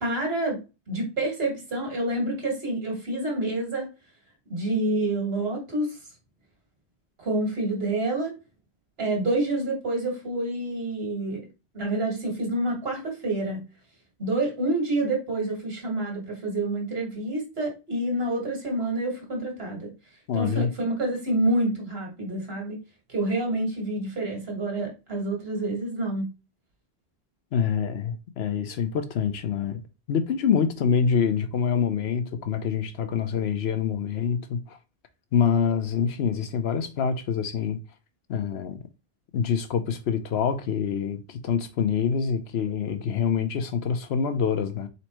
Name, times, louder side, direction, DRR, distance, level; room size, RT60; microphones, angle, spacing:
voice 1, 0.0-0.6 0.9-3.9 4.5-5.9 7.2-8.3 9.0-11.5 11.7-13.6 14.2-19.9 20.3-22.8 23.1-26.3, right 2 dB, 70° right, 1.9 m, -28 dB
voice 2, 20.3-20.7 27.5-29.8 30.1-34.8 35.3-37.8 38.3-38.8 39.3-44.9, left 7 dB, 80° left, 0.9 m, -26 dB
4.3 x 4.2 x 3.0 m
omnidirectional pair, 1.1 m